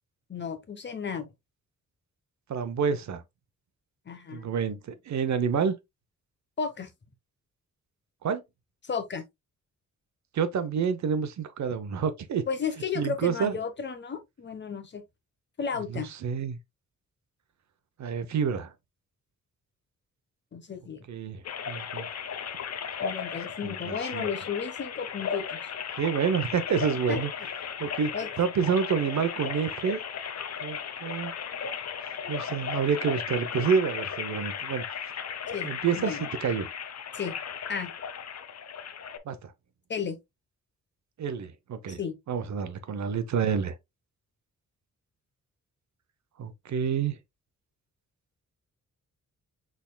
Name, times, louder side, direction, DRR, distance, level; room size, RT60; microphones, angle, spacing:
voice 1, 0.3-1.3 4.1-4.5 6.6-6.9 8.8-9.2 12.5-15.0 15.6-16.1 20.5-21.0 23.0-25.6 27.1-27.2 28.1-28.3 35.5-36.3 37.1-37.3 37.7-37.9 39.9-40.2 41.9-42.1, left 6 dB, 35° left, 1.0 m, -33 dB
voice 2, 2.5-3.2 4.3-5.8 8.2-8.4 10.3-12.4 12.9-13.5 15.9-16.6 18.0-18.7 21.1-22.1 23.6-24.3 26.0-27.3 27.8-28.1 28.4-30.0 30.6-31.3 32.1-34.8 35.6-36.7 39.3-39.5 41.2-42.0 42.3-43.7 46.4-47.2, right 6 dB, 60° right, 0.8 m, -28 dB
sound 1, 21.4-39.2, left 7 dB, 55° left, 0.7 m, -36 dB
6.5 x 3.6 x 2.2 m
wide cardioid pair, 155°, 31 cm